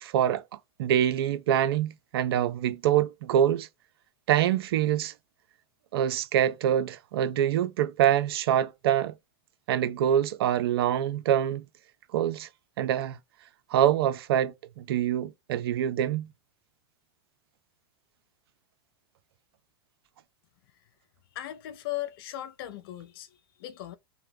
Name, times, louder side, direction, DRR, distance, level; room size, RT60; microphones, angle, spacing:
voice 1, 0.0-0.4 0.8-3.7 4.3-5.1 5.9-9.1 9.7-11.6 12.1-12.5 12.8-13.2 13.7-16.3, right 10 dB, 75° right, 0.5 m, -25 dB
voice 2, 21.3-24.0, left 14 dB, 65° left, 0.5 m, -38 dB
2.8 x 2.1 x 3.1 m
hypercardioid pair, 105°, 13 cm